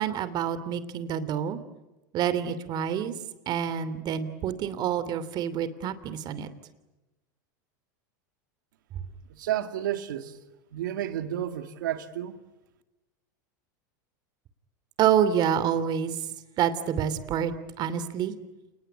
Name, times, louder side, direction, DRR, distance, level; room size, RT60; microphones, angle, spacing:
voice 1, 0.0-1.6 2.1-3.1 3.5-6.5 15.0-16.2 16.6-18.3, right 9 dB, 45° right, 2.9 m, -27 dB
voice 2, 9.3-10.4 10.7-12.4, right 11 dB, 85° right, 2.4 m, -31 dB
29.0 x 20.0 x 10.0 m
supercardioid pair, 120°, 10 cm